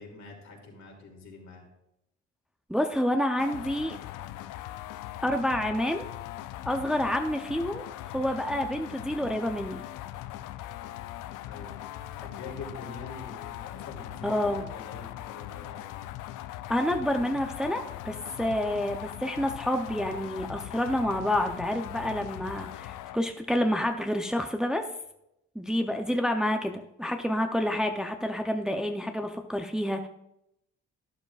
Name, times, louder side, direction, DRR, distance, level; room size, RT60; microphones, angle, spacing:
voice 1, 0.0-1.6 11.5-16.0, left 3 dB, 65° left, 0 dB, 2.8 m, -45 dB
voice 2, 2.7-4.0 5.2-6.0 6.6-9.8 14.2-14.6 16.7-24.9 25.5-30.1, left 1 dB, ahead, 5 dB, 0.6 m, -28 dB
sound 1, 3.4-23.2, left 13 dB, 90° left, 0.5 m, -40 dB
12.0 x 11.0 x 2.4 m, 0.83 s
cardioid pair, 90°, 30 cm